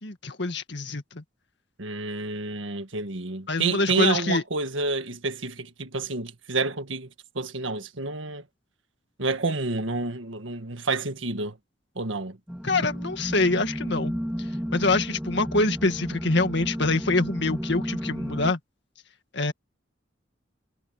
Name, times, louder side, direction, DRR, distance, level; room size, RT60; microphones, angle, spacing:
voice 1, 0.0-1.2 3.5-4.4 12.6-14.1 14.4-18.6 19.3-19.5, left 3 dB, 65° left, 2.0 m, -25 dB
voice 2, 1.8-7.1 7.4-8.4 9.2-11.6 12.0-12.4, right 3 dB, 80° right, 1.7 m, -29 dB
sound 1, 12.5-18.5, equal, 5° right, 1.8 m, -32 dB
head